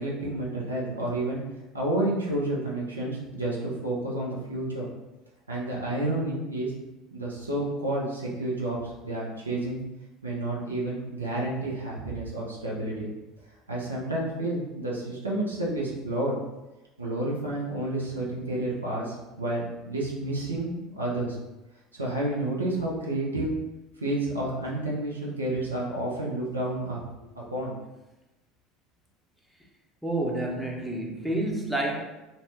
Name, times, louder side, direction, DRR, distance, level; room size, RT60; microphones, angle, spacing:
voice 1, 0.0-1.4 1.7-4.9 5.5-6.7 7.1-9.8 10.2-13.1 13.7-16.4 17.0-21.4 21.9-23.6 24.0-27.0 27.5-27.7, right 1 dB, 85° right, -4 dB, 0.5 m, -30 dB
voice 2, 30.0-32.0, right 1 dB, 5° right, -1 dB, 0.6 m, -29 dB
2.7 x 2.1 x 3.2 m, 1.0 s
figure-of-eight pair, 70°, 0 cm